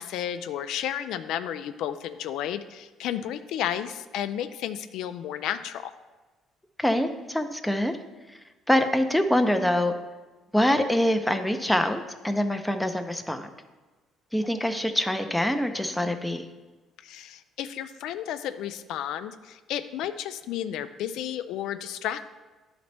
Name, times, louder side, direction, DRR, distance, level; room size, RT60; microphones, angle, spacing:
voice 1, 0.0-5.9 17.0-22.3, left 10 dB, 80° left, 10 dB, 0.3 m, -32 dB
voice 2, 6.8-8.0 8.7-9.9 10.5-13.5 14.3-16.5, left 1 dB, 5° left, 6 dB, 0.5 m, -24 dB
11.0 x 4.0 x 3.3 m, 1.2 s
cardioid pair, 105°, 0 cm